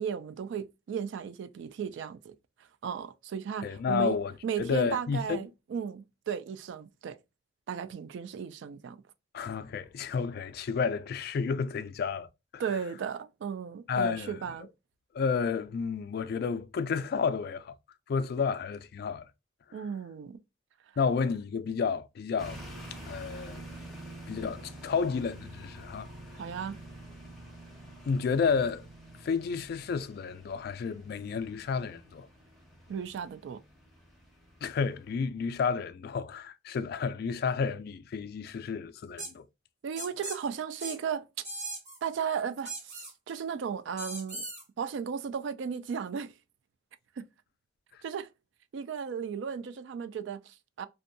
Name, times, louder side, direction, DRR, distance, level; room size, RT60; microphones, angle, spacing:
voice 1, 0.0-2.3 2.8-4.2 4.4-7.2 7.7-9.0 12.6-14.7 19.7-20.4 26.4-26.8 32.9-33.6 39.8-41.3 42.0-44.5 44.8-46.3 47.2-47.3 48.0-48.3 48.7-50.9, right 7 dB, 70° right, 0.3 m, -35 dB
voice 2, 3.6-4.3 4.6-5.4 9.3-12.3 12.5-12.6 13.9-14.4 15.1-17.7 18.1-19.3 21.0-22.6 23.1-23.6 24.3-26.1 28.1-28.8 29.2-32.3 34.6-39.5, left 5 dB, 55° left, 0.3 m, -31 dB
sound 1, 22.4-35.1, right 1 dB, ahead, 0.7 m, -48 dB
sound 2, 39.2-39.3 40.0-40.4 40.8-41.0 41.4-42.0 42.7-43.1 44.0-44.6, right 2 dB, 40° right, 1.2 m, -38 dB
2.6 x 2.2 x 2.5 m
head